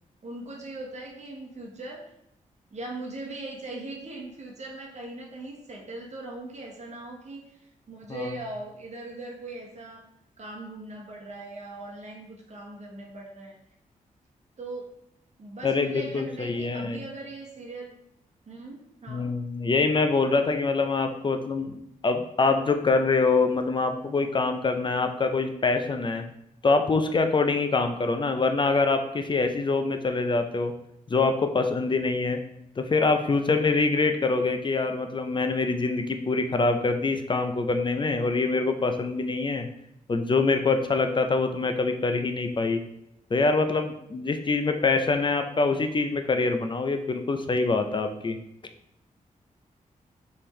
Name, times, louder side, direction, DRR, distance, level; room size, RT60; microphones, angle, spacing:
voice 1, 0.2-2.1 2.7-7.4 7.9-10.0 10.4-13.6 14.6-14.9 15.4-18.0 18.5-19.3, right 2 dB, 55° right, -1 dB, 1.0 m, -40 dB
voice 2, 15.6-17.0 19.1-26.3 26.6-30.7 31.1-32.4 32.8-39.7 40.1-42.8 43.3-48.4, left 3 dB, 35° left, 7 dB, 0.5 m, -25 dB
4.5 x 3.5 x 3.1 m, 0.78 s
cardioid pair, 75°, 14 cm